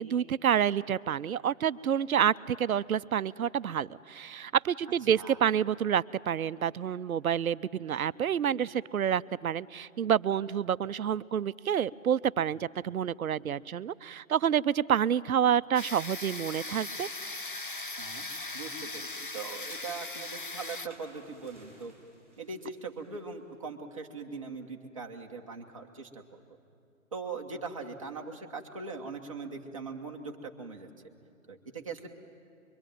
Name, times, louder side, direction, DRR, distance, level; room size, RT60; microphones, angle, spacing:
voice 1, 0.0-17.1, right 9 dB, 90° right, 17 dB, 0.7 m, -28 dB
sound 1, 15.8-20.9, left 2 dB, 40° left, 0.5 m, -39 dB
sound 2, 17.7-23.3, right 1 dB, ahead, 5.5 m, -61 dB
voice 2, 18.0-21.9 22.4-26.2 27.1-30.9 31.5-32.1, right 4 dB, 25° right, 0 dB, 1.3 m, -41 dB
24.0 x 24.0 x 9.2 m, 2.6 s
hypercardioid pair, 180°, 41 cm